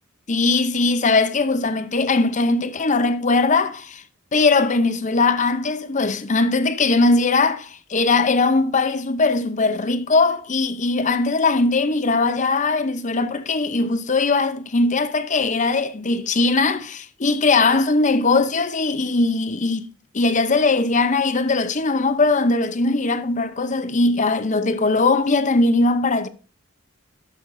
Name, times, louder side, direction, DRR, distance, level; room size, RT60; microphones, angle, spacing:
voice 1, 0.3-4.0 4.3-19.9 20.1-26.3, left 3 dB, 40° left, 0.7 m, -20 dB
12.0 x 6.4 x 2.6 m
head